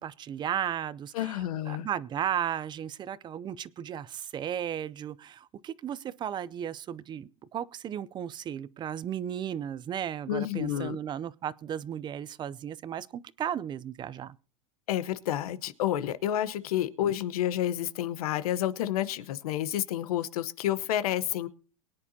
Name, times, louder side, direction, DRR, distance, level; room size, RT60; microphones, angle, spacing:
voice 1, 0.0-14.3, right 9 dB, 25° right, 0.5 m, -35 dB
voice 2, 1.1-1.9 10.3-11.0 14.9-21.5, left 12 dB, 80° left, 1.1 m, -30 dB
23.0 x 9.8 x 2.8 m
supercardioid pair, 130°, 19 cm